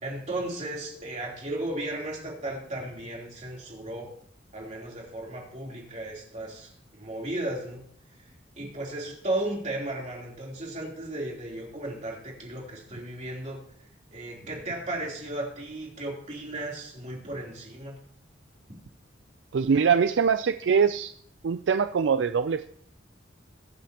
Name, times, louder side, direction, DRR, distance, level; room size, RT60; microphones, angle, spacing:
voice 1, 0.0-4.1 4.5-7.8 8.2-13.6 14.1-18.0, right 1 dB, 40° right, -2 dB, 3.4 m, -35 dB
voice 2, 19.5-21.1 21.4-22.7, right 6 dB, 70° right, 11 dB, 0.4 m, -23 dB
23.0 x 8.4 x 2.9 m, 0.64 s
head